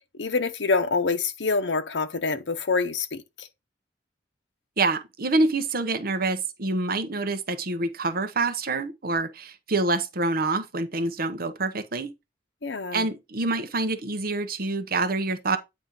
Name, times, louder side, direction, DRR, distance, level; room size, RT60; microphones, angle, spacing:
voice 1, 0.2-3.5 12.6-13.1, left 4 dB, 80° left, 0.7 m, -26 dB
voice 2, 4.8-12.1 12.9-15.6, right 3 dB, 55° right, 0.9 m, -26 dB
8.9 x 3.2 x 5.3 m
head